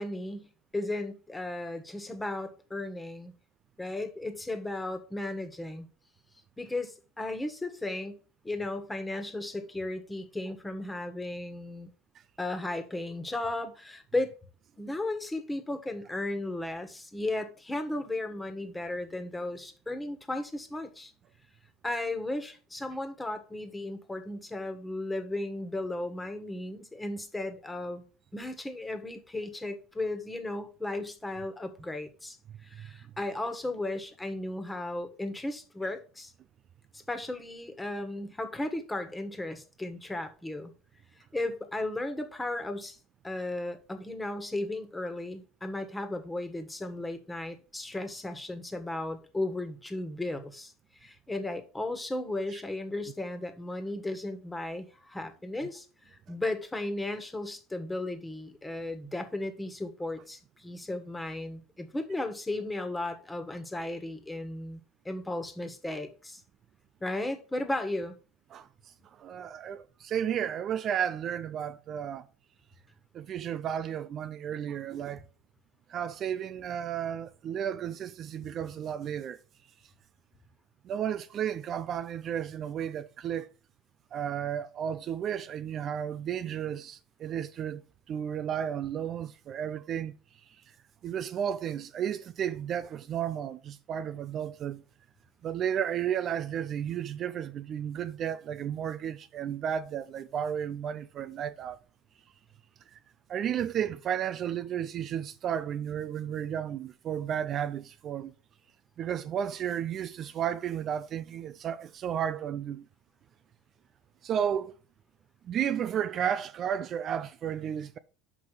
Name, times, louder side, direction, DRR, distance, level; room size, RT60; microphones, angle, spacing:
voice 1, 0.0-3.3 3.8-5.9 6.6-11.9 12.4-14.3 14.8-21.1 21.8-28.0 28.3-32.4 32.6-36.3 37.1-40.7 41.3-43.0 43.2-50.7 51.0-55.8 56.1-64.8 65.0-66.4 67.0-68.1, left 2 dB, 10° left, 1.6 m, -35 dB
voice 2, 68.5-72.2 73.1-75.3 75.9-79.4 80.8-83.5 84.1-87.8 88.1-90.1 90.5-90.6 91.0-94.8 95.4-101.8 102.9-103.0 103.3-108.3 109.0-112.9 114.2-114.7 115.4-118.0, right 9 dB, 45° right, 0.4 m, -33 dB
6.2 x 5.4 x 4.9 m
hypercardioid pair, 75°, 0 cm